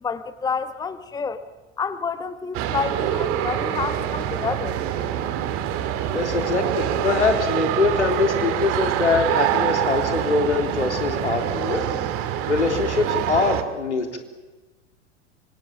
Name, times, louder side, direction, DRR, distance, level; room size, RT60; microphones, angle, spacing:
voice 1, 0.0-1.5 1.8-4.8, left 5 dB, 10° left, 1.1 m, -29 dB
sound 1, 2.5-13.6, right 11 dB, 40° right, 2.3 m, -25 dB
voice 2, 6.1-11.8 12.5-14.2, left 4 dB, 75° left, 3.6 m, -23 dB
25.5 x 25.0 x 9.0 m
figure-of-eight pair, 90°, 35 cm